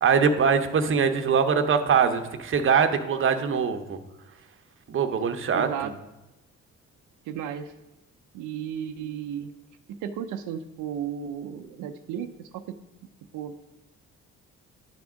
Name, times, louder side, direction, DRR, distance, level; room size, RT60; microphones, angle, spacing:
voice 1, 0.0-4.0 4.9-5.9, right 6 dB, 45° right, 7 dB, 0.8 m, -23 dB
voice 2, 5.5-5.9 7.3-7.7 8.3-9.5 9.9-12.8 13.3-13.5, right 9 dB, 85° right, 7 dB, 0.5 m, -34 dB
10.5 x 3.5 x 6.2 m, 0.98 s
cardioid pair, 90°, 30 cm